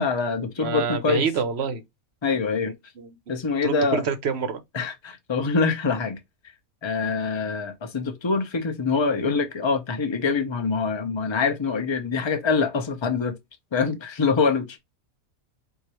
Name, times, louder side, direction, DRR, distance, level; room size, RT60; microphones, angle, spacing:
voice 1, 0.0-1.2 2.2-2.7 3.3-4.0 4.7-6.2 6.8-13.4 13.7-14.8, left 4 dB, 25° left, 0.6 m, -24 dB
voice 2, 0.6-1.8 2.6-3.1 3.6-4.6, right 6 dB, 55° right, 0.9 m, -27 dB
4.7 x 2.6 x 3.0 m
omnidirectional pair, 1.4 m